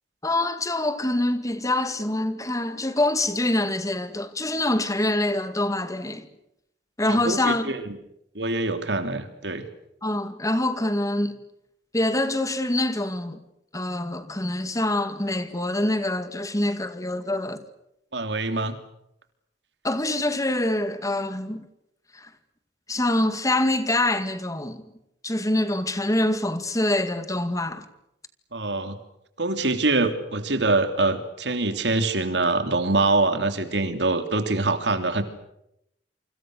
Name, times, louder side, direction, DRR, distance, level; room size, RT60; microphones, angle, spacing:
voice 1, 0.2-6.3 7.0-7.7 10.0-11.4 11.9-13.4 13.7-17.6 19.8-21.6 22.1-22.3 22.9-24.8 25.2-27.8, left 1 dB, 20° left, 2.1 m, -25 dB
voice 2, 7.1-7.9 8.3-9.6 18.1-18.8 28.5-29.0 29.4-35.2, right 2 dB, 85° right, 3.2 m, -24 dB
28.5 x 25.5 x 6.5 m
head